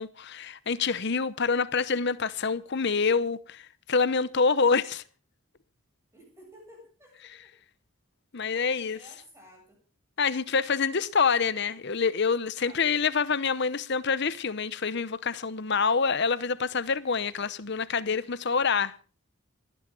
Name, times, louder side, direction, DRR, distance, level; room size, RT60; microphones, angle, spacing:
voice 1, 0.0-5.0 8.3-9.0 10.2-18.9, left 5 dB, 55° left, 0.8 m, -26 dB
voice 2, 6.1-7.5 8.5-9.8 12.6-12.9, equal, 10° right, 7.3 m, -53 dB
28.5 x 10.0 x 3.8 m
head